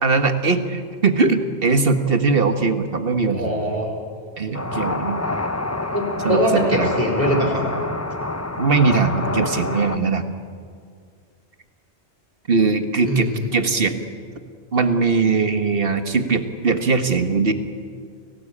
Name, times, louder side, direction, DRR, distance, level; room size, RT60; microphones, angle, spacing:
voice 1, 0.0-3.6 4.4-5.2 6.2-6.9 8.6-10.3 12.5-14.1 14.7-17.5, right 4 dB, 55° right, 7 dB, 1.8 m, -20 dB
voice 2, 3.3-3.9 5.9-7.6 13.1-13.4, equal, 35° right, 0 dB, 4.5 m, -22 dB
sound 1, 4.5-10.0, left 2 dB, 15° left, 0.9 m, -27 dB
30.0 x 18.5 x 8.7 m, 2.1 s
omnidirectional pair, 1.2 m